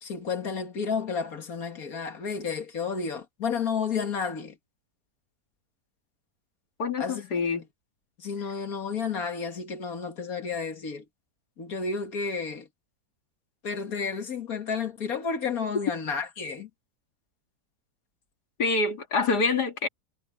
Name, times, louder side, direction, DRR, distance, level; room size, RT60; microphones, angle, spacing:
voice 1, 0.0-4.6 7.0-7.3 8.2-11.0 11.6-12.7 13.6-16.7, left 5 dB, 65° left, 2.3 m, -31 dB
voice 2, 6.8-7.6 18.6-19.9, left 4 dB, 90° left, 2.9 m, -26 dB
omnidirectional pair, 1.7 m